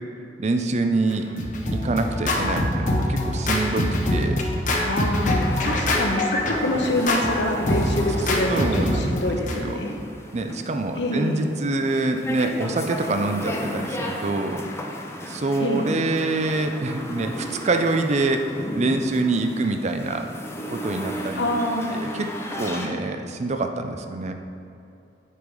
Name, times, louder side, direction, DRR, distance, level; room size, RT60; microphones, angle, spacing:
voice 1, 0.4-1.3 1.7-4.4 8.5-9.8 10.3-14.6 15.3-20.3 20.7-21.4 21.9-22.3 22.6-24.3, right 2 dB, 40° right, 6 dB, 0.5 m, -25 dB
Scratching (performance technique), 1.1-9.6, left 1 dB, 45° left, 0.9 m, -24 dB
voice 2, 4.8-8.7 8.9-10.0 10.9-11.5 15.6-15.9 21.4-22.0, left 1 dB, 85° left, 2 dB, 1.0 m, -26 dB
sound 1, 5.4-22.9, equal, 15° left, 0.8 m, -35 dB
8.5 x 4.8 x 5.3 m, 2.6 s
head